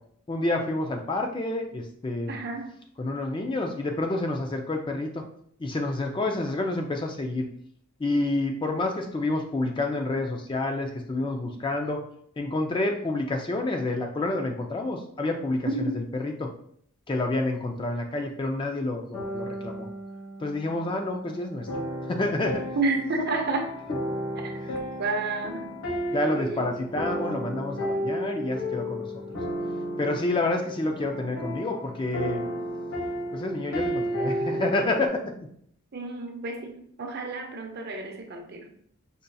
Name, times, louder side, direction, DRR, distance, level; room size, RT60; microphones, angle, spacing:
voice 1, 0.3-2.4 3.0-5.2 5.6-7.4 8.0-12.0 12.4-16.5 17.1-19.9 20.4-21.7 22.1-22.7 24.6-24.8 26.1-29.4 30.0-32.4 33.3-35.2, left 2 dB, 20° left, 2 dB, 0.3 m, -28 dB
voice 2, 2.3-2.7 15.7-16.0 22.8-23.7 25.0-25.7 26.3-26.7 35.9-38.7, right 3 dB, 45° right, 3 dB, 0.6 m, -30 dB
sound 1, 19.1-35.1, equal, 65° left, 1.1 m, -33 dB
5.1 x 2.7 x 2.2 m, 0.65 s
head